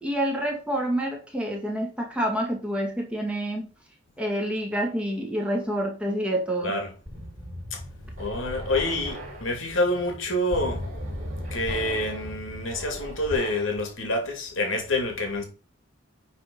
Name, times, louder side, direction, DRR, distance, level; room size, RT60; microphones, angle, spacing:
voice 1, 0.0-3.7 4.2-6.8, right 1 dB, 5° right, 2.1 m, -28 dB
sound 1, 7.1-13.8, equal, 40° right, 4.4 m, -37 dB
voice 2, 8.2-10.9 11.5-15.4, left 1 dB, 85° left, 2.7 m, -27 dB
9.4 x 4.2 x 5.6 m
head